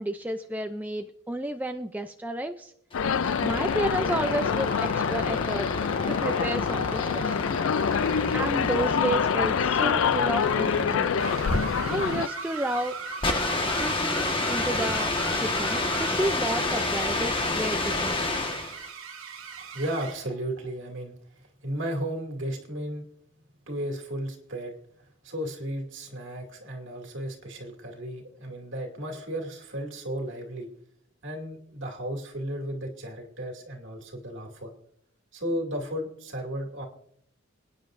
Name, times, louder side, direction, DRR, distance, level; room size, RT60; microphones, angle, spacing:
voice 1, 0.0-2.7 3.4-5.7 6.1-7.5 8.3-11.1 11.8-13.0 13.8-15.1 15.4-18.2, right 1 dB, 10° right, 6 dB, 0.4 m, -31 dB
sound 1, 2.9-12.3, left 6 dB, 65° left, 0.4 m, -26 dB
sound 2, 2.9-18.8, left 2 dB, 25° left, 1.4 m, -30 dB
sound 3, 11.2-20.3, right 4 dB, 75° right, 1.3 m, -38 dB
voice 2, 19.7-23.1 23.7-24.7 25.2-30.7 31.2-34.7 35.3-36.9, right 1 dB, 60° right, 2 dB, 2.5 m, -34 dB
27.0 x 9.7 x 2.6 m, 0.70 s
head